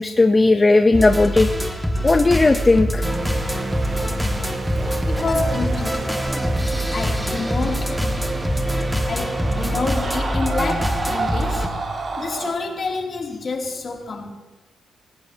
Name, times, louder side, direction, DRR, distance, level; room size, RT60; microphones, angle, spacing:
voice 1, 0.0-1.5 2.0-3.0, left 2 dB, 30° left, 0.7 m, -16 dB
sound 1, 0.9-11.7, equal, ahead, 1.7 m, -25 dB
sound 2, 3.0-9.9, right 3 dB, 35° right, 1.6 m, -29 dB
voice 2, 5.1-6.4 6.9-8.4 9.1-11.7 12.2-14.3, left 3 dB, 50° left, 2.8 m, -28 dB
Screaming, 8.1-12.6, right 3 dB, 50° right, 2.3 m, -30 dB
18.0 x 14.5 x 2.9 m
supercardioid pair, 50°, 0 cm